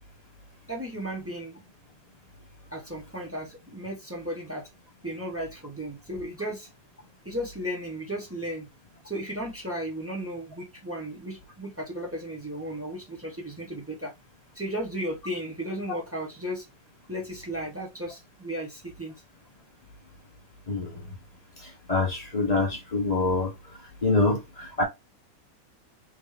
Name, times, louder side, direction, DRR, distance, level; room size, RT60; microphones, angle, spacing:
voice 1, 0.7-1.6 2.7-4.7 5.0-6.7 7.2-8.7 9.0-14.1 14.5-16.6 17.1-19.1, equal, 10° right, 0.9 m, -35 dB
voice 2, 20.7-21.0 21.9-23.5 24.0-24.8, left 3 dB, 45° left, 0.5 m, -25 dB
4.4 x 2.7 x 3.2 m
omnidirectional pair, 2.0 m